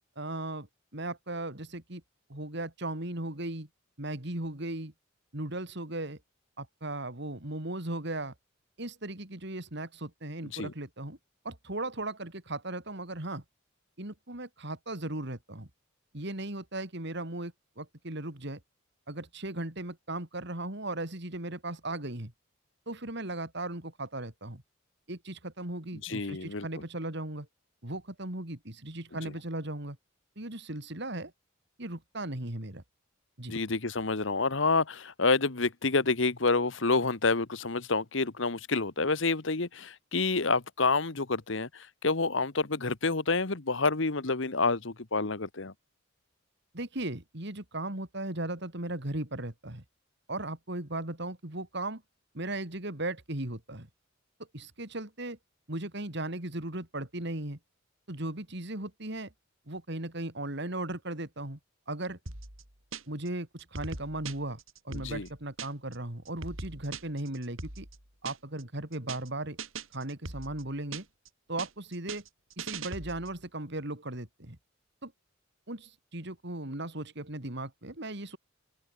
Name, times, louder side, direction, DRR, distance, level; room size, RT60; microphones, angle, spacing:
voice 1, 0.1-0.7 0.9-2.0 2.3-3.7 4.0-4.9 5.3-6.2 6.6-8.3 8.8-11.2 11.4-13.4 14.0-15.7 16.1-18.6 19.1-22.3 22.9-24.6 25.1-27.5 27.8-30.0 30.4-31.3 31.8-32.8 33.4-33.5 46.7-49.8 50.3-52.0 52.3-53.9 54.5-55.4 55.7-57.6 58.1-59.3 59.7-61.6 61.9-62.2 63.1-67.9 68.2-69.6 69.9-71.0 71.5-72.2 72.6-74.6 75.0-75.1 75.7-78.4, right 2 dB, 55° right, 3.3 m, -37 dB
voice 2, 26.0-26.7 33.5-45.7 64.9-65.3, left 3 dB, 65° left, 1.4 m, -28 dB
sound 1, 62.3-63.3 63.6-66.0 66.3-68.6 68.9-69.3 69.6-71.3 71.6-73.4, right 4 dB, 80° right, 6.2 m, -41 dB
open air
head